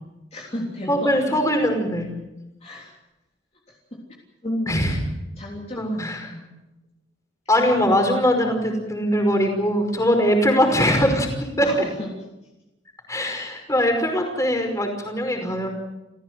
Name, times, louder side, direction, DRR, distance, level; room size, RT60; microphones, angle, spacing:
voice 1, 0.3-1.4 2.6-3.0 3.7-4.1 4.4-4.9 5.4-6.5 10.3-10.9 11.6-12.1, left 1 dB, 35° left, -2 dB, 3.5 m, -33 dB
voice 2, 0.9-2.1 4.7-5.0 5.8-6.3 7.5-11.7 13.1-15.7, equal, 15° left, 4 dB, 5.3 m, -21 dB
29.5 x 16.0 x 7.7 m, 0.97 s
head